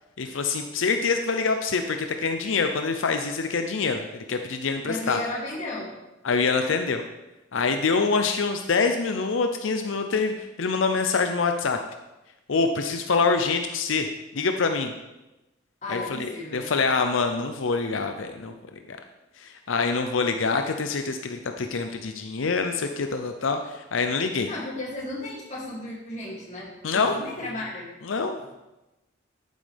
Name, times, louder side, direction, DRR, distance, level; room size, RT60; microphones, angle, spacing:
voice 1, 0.2-5.2 6.2-7.0 7.5-11.8 12.5-14.1 14.3-14.9 15.9-18.5 18.9-19.0 19.4-24.5 26.8-27.2 28.0-28.5, left 4 dB, 90° left, 6 dB, 0.6 m, -25 dB
voice 2, 4.8-5.9 15.8-16.7 24.5-27.9, left 2 dB, 40° left, -4 dB, 2.8 m, -34 dB
11.0 x 9.3 x 3.5 m, 1.0 s
head